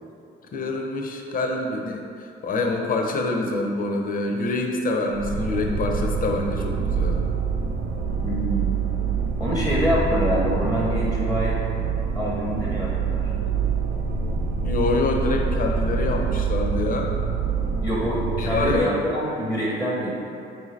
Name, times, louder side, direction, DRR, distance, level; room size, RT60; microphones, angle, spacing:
voice 1, 0.5-2.0 2.4-7.2 14.6-17.1 18.4-18.9, left 2 dB, 45° left, 2 dB, 0.5 m, -26 dB
sound 1, 5.1-18.8, right 5 dB, 60° right, 0.5 m, -25 dB
voice 2, 8.2-8.8 9.4-11.6 12.2-13.3 17.8-20.1, equal, 5° right, -6 dB, 0.7 m, -26 dB
4.4 x 2.7 x 3.1 m, 2.6 s
cardioid pair, 90°, 20 cm